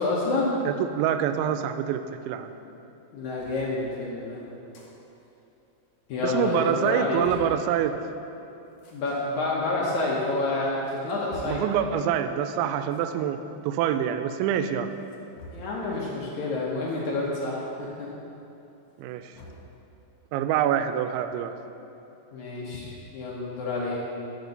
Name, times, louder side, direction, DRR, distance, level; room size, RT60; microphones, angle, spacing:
voice 1, 0.0-0.5 3.1-4.4 6.1-7.2 8.9-11.6 11.9-12.0 15.5-18.1 22.3-24.0, left 2 dB, 75° left, -5 dB, 1.7 m, -28 dB
voice 2, 0.7-2.6 6.2-8.0 11.4-14.9 19.0-19.3 20.3-21.6, right 9 dB, 85° right, 9 dB, 2.9 m, -26 dB
sound 1, 3.4-3.6 4.5-4.9 5.3-5.4 5.6-5.7 6.3-6.4 6.7-7.6 8.7-9.0 9.8-9.9 10.6-11.7 12.8-13.1 14.9-15.8 16.9-17.0 17.4-17.5 18.8-19.7, right 1 dB, 60° left, 2.0 m, -47 dB
12.0 x 6.1 x 6.6 m, 2.9 s
omnidirectional pair, 5.2 m